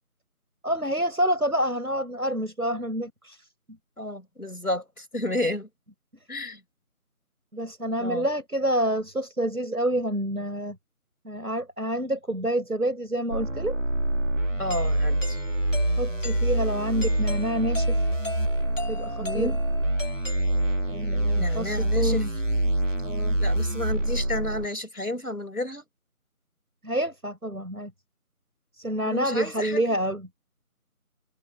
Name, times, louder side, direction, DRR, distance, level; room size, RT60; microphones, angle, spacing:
voice 1, 0.6-3.4 7.5-10.8 11.2-13.8 16.0-18.0 18.9-19.5 20.9-22.3 23.0-23.4 26.8-27.9 28.8-30.3, right 1 dB, 85° right, 5.8 m, -28 dB
voice 2, 4.0-5.7 6.3-6.6 8.0-8.3 14.6-15.4 19.2-19.6 21.4-22.2 23.4-25.8 29.0-29.8, left 1 dB, 80° left, 4.9 m, -31 dB
sound 1, 13.3-24.7, right 1 dB, 60° right, 2.4 m, -26 dB
Doorbell, 14.7-21.0, left 2 dB, 60° left, 4.7 m, -39 dB
figure-of-eight pair, 170°, 43 cm